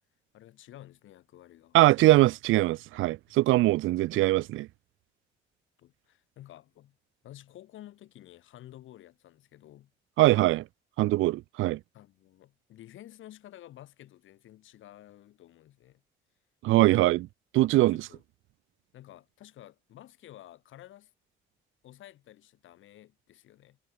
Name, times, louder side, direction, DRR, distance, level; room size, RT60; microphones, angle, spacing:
voice 1, 0.3-2.2 3.3-3.4 5.8-7.0 7.2-9.9 11.9-16.0 17.7-18.2 18.9-21.1 21.8-23.8, left 13 dB, 80° left, 3.9 m, -52 dB
voice 2, 1.7-4.7 10.2-10.6 11.0-11.8 16.6-17.3 17.5-18.0, right 17 dB, 85° right, 0.5 m, -22 dB
cardioid pair, 90°, 20 cm